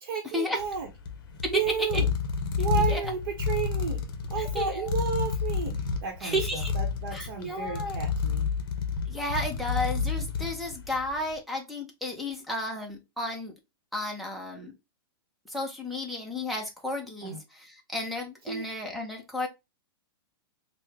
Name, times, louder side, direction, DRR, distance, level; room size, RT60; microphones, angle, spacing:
voice 1, 0.0-0.9 1.5-2.1 2.6-8.5 17.2-17.4 18.5-18.7, right 7 dB, 55° right, 0 dB, 0.8 m, -32 dB
sound 1, 0.6-11.2, left 5 dB, 55° left, 0.6 m, -30 dB
voice 2, 4.6-4.9 6.2-6.7 7.1-8.0 9.1-13.5 13.9-14.7 15.5-19.5, left 1 dB, ahead, 1 dB, 0.4 m, -33 dB
3.5 x 2.1 x 3.2 m, 0.23 s
hypercardioid pair, 170°, 13 cm